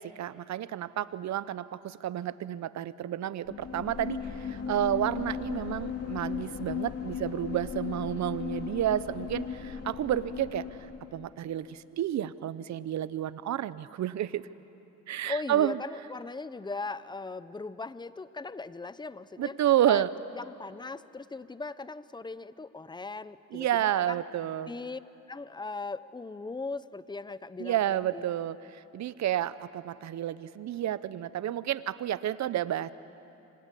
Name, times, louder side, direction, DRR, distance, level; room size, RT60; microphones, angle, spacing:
voice 1, 0.0-10.6 11.1-14.4 15.1-15.8 19.4-20.1 23.5-24.7 27.6-32.9, right 12 dB, 65° right, 16 dB, 0.9 m, -30 dB
sound 1, 3.4-11.3, left 7 dB, 55° left, 2.5 m, -37 dB
voice 2, 15.3-19.6 19.9-20.0 20.3-24.2 24.7-25.0 25.3-28.2, left 3 dB, 15° left, 15 dB, 0.8 m, -38 dB
27.0 x 25.5 x 8.4 m, 2.9 s
cardioid pair, 90°, 30 cm